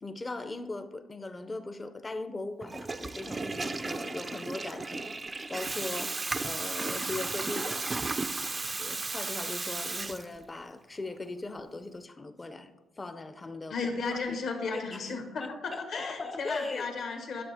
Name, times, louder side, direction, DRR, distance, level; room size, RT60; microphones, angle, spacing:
voice 1, 0.0-8.1 8.4-12.7 13.0-13.8 14.1-14.4 14.7-16.9, left 2 dB, 25° left, 0.5 m, -39 dB
Water tap faucet / Toilet flush, 2.6-10.6, right 3 dB, 25° right, 0.4 m, -34 dB
voice 2, 13.7-17.4, left 4 dB, 65° left, 1.4 m, -34 dB
11.0 x 6.3 x 3.5 m
cardioid pair, 90°, 0 cm